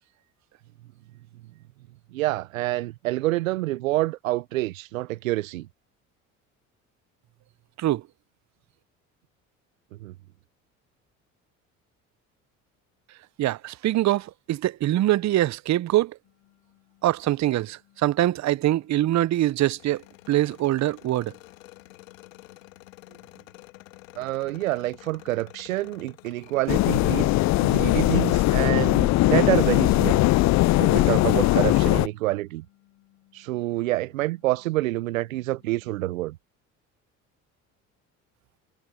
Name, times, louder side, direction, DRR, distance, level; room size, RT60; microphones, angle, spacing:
voice 1, 2.1-5.7 10.0-10.1 24.2-27.3 27.6-30.2 30.8-32.6 33.3-36.4, right 18 dB, 85° right, 0.8 m, -27 dB
voice 2, 13.4-16.1 17.0-21.3, right 14 dB, 45° right, 0.7 m, -24 dB
sound 1, 16.2-36.0, left 16 dB, 65° left, 5.2 m, -63 dB
sound 2, 19.8-29.7, left 20 dB, 85° left, 1.7 m, -49 dB
sound 3, 26.7-32.1, left 18 dB, 45° left, 0.4 m, -20 dB
hypercardioid pair, 60°, 39 cm